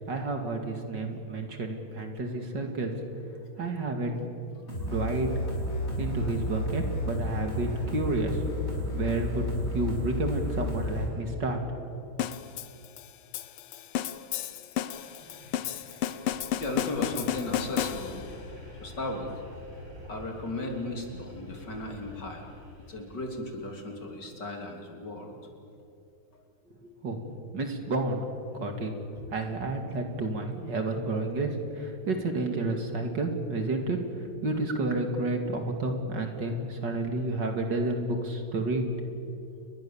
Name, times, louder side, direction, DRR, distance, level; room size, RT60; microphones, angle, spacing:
voice 1, 0.1-2.9 3.6-4.2 4.8-5.3 6.0-8.4 8.9-11.9 26.8-28.2 28.5-28.9 29.3-38.9, right 2 dB, 55° right, 5 dB, 2.9 m, -30 dB
sound 1, 4.7-11.1, left 1 dB, 30° left, 6.5 m, -32 dB
sound 2, 12.2-18.4, left 10 dB, 90° left, 1.8 m, -33 dB
sound 3, 14.6-23.6, left 1 dB, 80° right, 8.2 m, -48 dB
voice 2, 16.6-18.3 18.8-19.3 20.1-22.5 22.9-25.4, left 2 dB, 50° left, 2 dB, 3.8 m, -36 dB
29.5 x 22.5 x 7.3 m, 2.6 s
omnidirectional pair, 2.4 m